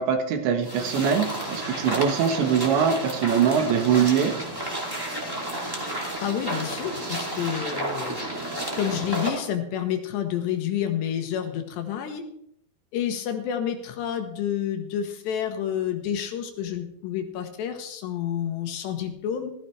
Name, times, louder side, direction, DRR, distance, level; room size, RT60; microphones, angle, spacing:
voice 1, 0.0-4.3, right 7 dB, 75° right, 4 dB, 3.6 m, -22 dB
sound 1, 0.6-9.4, right 1 dB, 10° right, 1.5 m, -31 dB
voice 2, 6.2-8.2 8.7-12.2 12.9-19.5, left 9 dB, 70° left, 6 dB, 3.0 m, -29 dB
15.5 x 15.0 x 3.3 m, 0.73 s
omnidirectional pair, 5.4 m